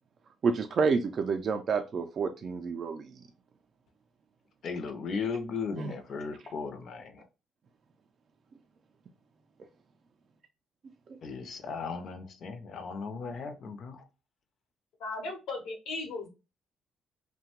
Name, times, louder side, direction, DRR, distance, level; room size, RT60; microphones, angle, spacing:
voice 1, 0.4-3.1 5.8-5.9 11.1-11.2, right 5 dB, 50° right, 0.3 m, -29 dB
voice 2, 4.6-7.2 11.2-14.0, left 5 dB, 55° left, 0.5 m, -36 dB
voice 3, 15.0-16.3, left 3 dB, 85° left, 0.8 m, -36 dB
2.7 x 2.1 x 2.8 m
cardioid pair, 105°, 0 cm